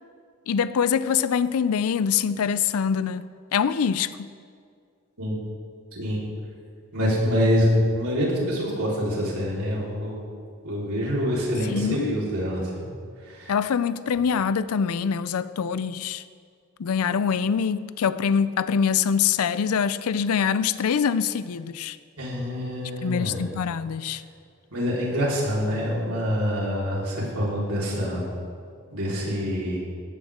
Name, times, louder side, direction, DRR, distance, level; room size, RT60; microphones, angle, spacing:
voice 1, 0.5-3.2 3.5-4.1 11.7-12.2 13.5-16.2 16.8-22.0 23.0-24.2, left 7 dB, 80° left, 14 dB, 0.4 m, -24 dB
voice 2, 6.9-10.3 10.6-12.8 13.2-13.6 22.2-23.4 24.7-28.2 28.9-29.8, equal, 85° right, -5 dB, 4.1 m, -26 dB
17.0 x 12.5 x 3.7 m, 2.2 s
head